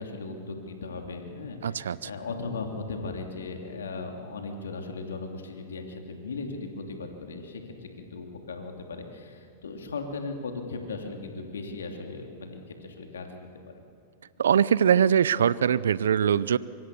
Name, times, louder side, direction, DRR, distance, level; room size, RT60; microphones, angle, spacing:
voice 1, 0.0-13.8, left 3 dB, 85° left, 3 dB, 2.9 m, -37 dB
voice 2, 1.6-2.0 14.4-16.6, right 8 dB, 80° right, 19 dB, 0.6 m, -22 dB
25.0 x 24.0 x 7.0 m, 2.4 s
hypercardioid pair, 105°, 0 cm